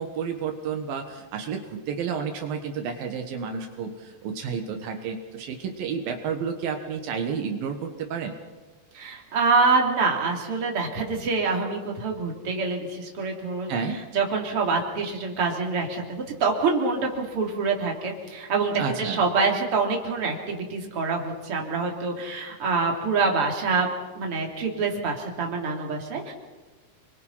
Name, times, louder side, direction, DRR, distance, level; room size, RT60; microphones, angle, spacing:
voice 1, 0.0-8.4 13.7-14.0 18.8-19.2, right 6 dB, 75° right, 4 dB, 3.3 m, -31 dB
voice 2, 8.9-13.7 14.1-23.9 24.2-26.3, right 4 dB, 40° right, 1 dB, 3.9 m, -26 dB
29.5 x 22.5 x 5.7 m, 1.2 s
omnidirectional pair, 4.2 m